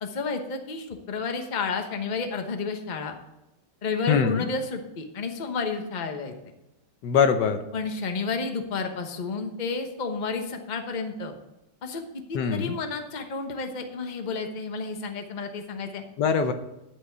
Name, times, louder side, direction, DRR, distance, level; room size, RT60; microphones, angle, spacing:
voice 1, 0.0-3.2 3.8-6.3 7.7-11.3 11.8-12.0 12.3-16.0, left 4 dB, 30° left, 5 dB, 1.0 m, -31 dB
voice 2, 4.1-4.4 7.0-7.6 12.3-12.7 16.2-16.5, left 6 dB, 75° left, 8 dB, 1.4 m, -22 dB
11.0 x 5.3 x 7.9 m, 0.92 s
omnidirectional pair, 1.9 m